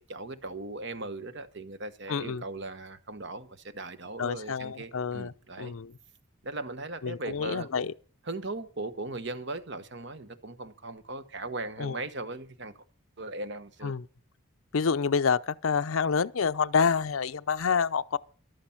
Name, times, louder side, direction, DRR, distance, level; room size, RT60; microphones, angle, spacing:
voice 1, 0.0-5.7 6.4-7.7 8.3-12.7 13.2-13.9, right 2 dB, 55° right, 1.1 m, -38 dB
voice 2, 2.1-2.4 4.2-5.9 7.0-7.9 11.8-12.0 13.8-14.1 14.7-18.2, left 6 dB, 80° left, 0.6 m, -28 dB
14.0 x 12.0 x 5.8 m
head